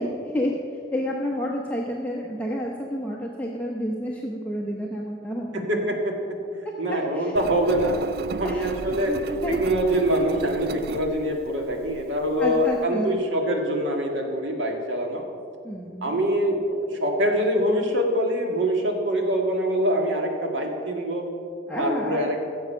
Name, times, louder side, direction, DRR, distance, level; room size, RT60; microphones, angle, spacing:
voice 1, 0.0-5.9 6.9-7.3 8.4-8.7 9.1-9.5 12.4-13.1 15.6-16.2 21.7-22.3, equal, 10° left, -3 dB, 0.8 m, -30 dB
voice 2, 5.5-6.4 6.8-8.0 8.4-9.1 9.5-15.2 16.0-21.3 21.8-22.4, equal, 85° right, 2 dB, 1.8 m, -24 dB
Engine, 7.4-12.8, right 4 dB, 50° right, 0.3 m, -35 dB
16.0 x 7.2 x 5.6 m, 2.5 s
head